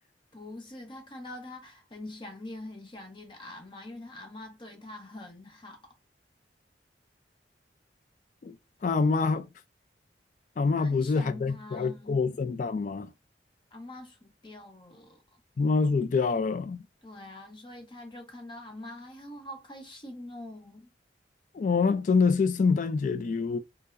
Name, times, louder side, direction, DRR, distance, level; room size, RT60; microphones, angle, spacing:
voice 1, 0.3-5.8 10.8-12.2 13.7-15.4 17.0-20.9, left 1 dB, 30° left, 0.9 m, -44 dB
voice 2, 8.8-9.5 10.6-13.1 15.6-16.8 21.5-23.6, left 4 dB, 45° left, 0.3 m, -26 dB
4.5 x 2.1 x 2.5 m
head